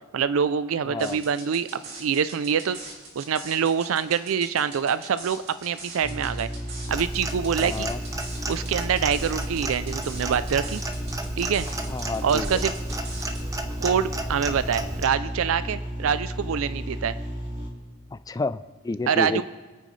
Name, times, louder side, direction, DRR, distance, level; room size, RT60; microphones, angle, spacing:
voice 1, 0.1-2.8 3.2-6.5 6.9-7.9 8.5-10.8 11.4-11.7 12.2-12.7 13.8-17.2 19.1-19.4, right 7 dB, 80° right, 14 dB, 0.4 m, -25 dB
voice 2, 0.9-1.2 7.6-8.0 11.9-12.5 18.3-19.4, left 3 dB, 15° left, 13 dB, 0.3 m, -30 dB
sound 1, 1.0-13.5, right 3 dB, 65° right, 3.9 m, -43 dB
sound 2, 6.0-17.7, equal, 40° right, 3.5 m, -33 dB
Clock, 6.9-15.1, right 2 dB, 15° right, 0.8 m, -34 dB
25.5 x 9.0 x 3.2 m, 1.3 s
head